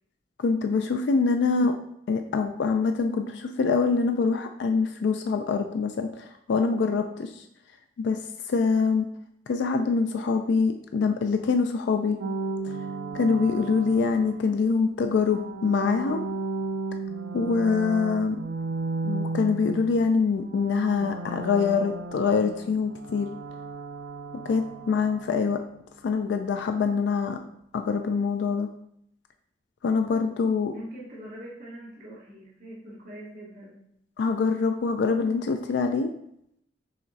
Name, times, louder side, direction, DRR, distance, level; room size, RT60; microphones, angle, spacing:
voice 1, 0.4-1.7 2.1-7.4 8.0-8.2 8.5-9.1 9.5-12.2 13.1-16.2 17.3-18.4 19.0-23.3 24.4-25.6 26.0-27.4 27.7-28.7 29.8-30.7 34.2-36.1, left 4 dB, 75° left, 6 dB, 0.3 m, -24 dB
sound 1, 12.2-14.6 15.2-20.1 20.4-25.3, right 3 dB, 80° right, 0.4 m, -34 dB
voice 2, 30.7-33.8, right 1 dB, 55° right, -14 dB, 1.7 m, -43 dB
5.7 x 3.0 x 2.6 m, 0.74 s
head